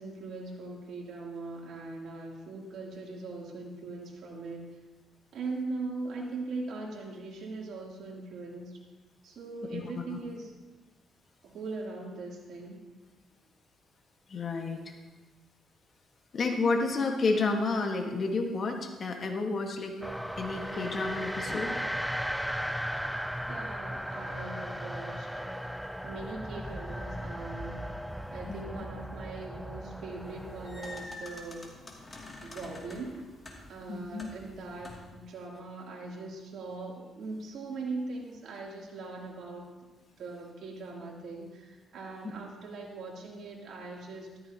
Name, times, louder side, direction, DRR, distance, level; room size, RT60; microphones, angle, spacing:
voice 1, 0.0-4.8 5.3-8.8 9.2-10.5 11.4-12.8 23.5-25.5 26.0-27.9 28.3-31.6 32.4-33.3 33.7-39.7 40.2-44.3, right 3 dB, 70° right, -3 dB, 3.0 m, -40 dB
voice 2, 14.3-14.9 16.3-20.0 20.4-21.8 28.5-28.8 33.9-34.3, left 3 dB, 45° left, 3 dB, 1.6 m, -30 dB
sound 1, 20.0-31.1, equal, ahead, 0.4 m, -36 dB
sound 2, 30.2-35.2, left 2 dB, 25° left, 2.6 m, -47 dB
14.0 x 13.5 x 2.9 m, 1.2 s
cardioid pair, 90°, 0 cm